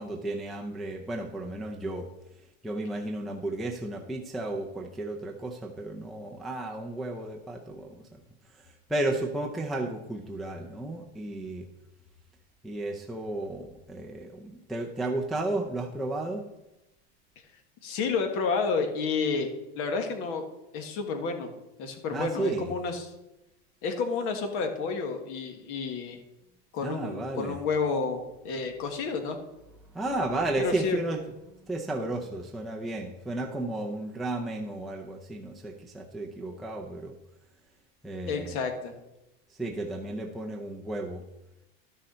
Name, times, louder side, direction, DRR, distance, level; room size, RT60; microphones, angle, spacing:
voice 1, 0.0-2.1 2.6-8.2 8.5-11.7 12.6-16.5 22.1-22.7 26.8-27.6 29.9-31.2 31.6-37.2 38.0-38.6 39.5-41.2, right 2 dB, ahead, -1 dB, 0.5 m, -33 dB
voice 2, 17.8-19.5 19.7-20.4 20.7-21.5 21.8-23.1 23.8-26.2 26.7-29.4 30.6-31.0 38.3-38.9, left 4 dB, 45° left, 5 dB, 1.7 m, -30 dB
12.5 x 6.4 x 4.3 m, 0.94 s
supercardioid pair, 160°, 32 cm